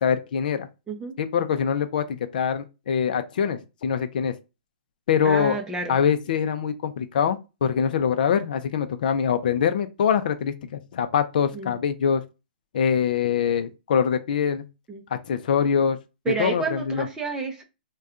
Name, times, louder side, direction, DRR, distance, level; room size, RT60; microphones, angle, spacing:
voice 1, 0.0-0.7 1.2-4.3 5.1-5.6 5.9-12.2 12.7-14.7 15.1-16.0 16.4-17.1, left 7 dB, 60° left, 0.5 m, -24 dB
voice 2, 5.2-6.0 11.5-11.7 14.9-15.0 16.3-17.6, right 5 dB, 10° right, 0.6 m, -30 dB
2.6 x 2.3 x 3.5 m
hypercardioid pair, 155°, 5 cm